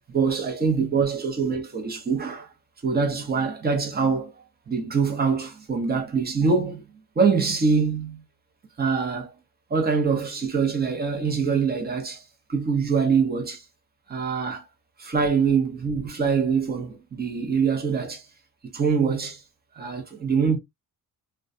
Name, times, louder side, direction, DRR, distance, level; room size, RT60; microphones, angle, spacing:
voice 1, 0.1-2.5 2.8-4.3 4.7-6.8 7.2-8.2 8.8-9.3 9.7-12.2 12.5-13.6 14.1-14.6 15.0-18.2 18.7-19.4 19.8-20.6, right 5 dB, 25° right, 0.7 m, -24 dB
2.3 x 2.2 x 2.5 m
cardioid pair, 130°, 35 cm